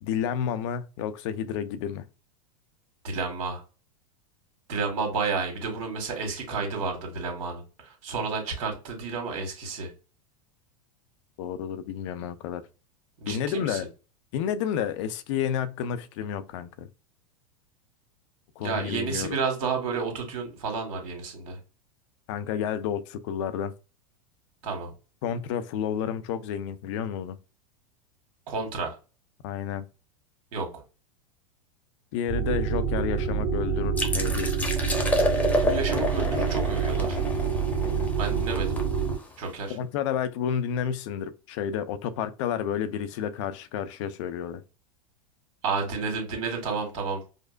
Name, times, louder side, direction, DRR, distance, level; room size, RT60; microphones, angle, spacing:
voice 1, 0.0-2.1 11.4-12.7 13.3-13.9 14.3-16.9 18.6-19.4 22.3-23.7 25.2-27.4 29.4-29.8 32.1-34.6 37.8-38.1 39.7-44.6, left 8 dB, 60° left, 0.5 m, -30 dB
voice 2, 3.0-3.6 4.7-9.9 13.2-13.8 18.6-21.6 24.6-24.9 28.5-29.0 30.5-30.7 35.6-37.2 38.2-38.8 39.4-39.8 45.6-47.2, right 4 dB, 65° right, 1.6 m, -31 dB
sound 1, 32.3-39.2, right 6 dB, 30° right, 1.8 m, -27 dB
sound 2, 34.0-39.5, left 1 dB, 10° left, 0.9 m, -29 dB
5.0 x 2.0 x 2.4 m
hypercardioid pair, 100°, 18 cm